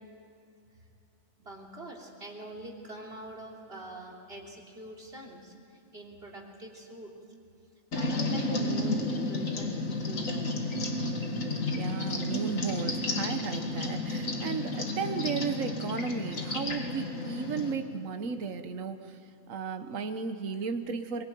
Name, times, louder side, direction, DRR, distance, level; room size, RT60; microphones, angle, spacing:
voice 1, 1.4-7.1 7.9-9.7 10.1-10.5, right 1 dB, 45° right, -1 dB, 3.4 m, -45 dB
sound 1, 7.9-17.7, left 2 dB, 70° left, 2.3 m, -32 dB
voice 2, 11.7-19.1 19.5-21.2, right 5 dB, 70° right, 7 dB, 1.5 m, -34 dB
22.5 x 22.0 x 9.2 m, 2.7 s
omnidirectional pair, 1.4 m